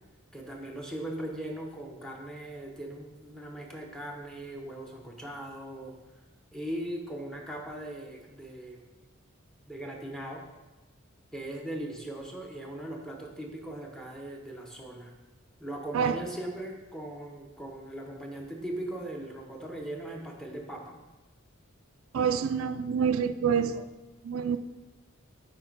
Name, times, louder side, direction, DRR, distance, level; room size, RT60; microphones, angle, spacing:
voice 1, 0.3-5.9 6.5-8.8 9.7-10.4 11.3-15.1 15.6-21.0, right 1 dB, 5° left, 1 dB, 0.8 m, -39 dB
voice 2, 22.1-23.8 24.2-24.6, right 7 dB, 75° right, 10 dB, 0.3 m, -27 dB
7.7 x 5.1 x 3.9 m, 1.1 s
head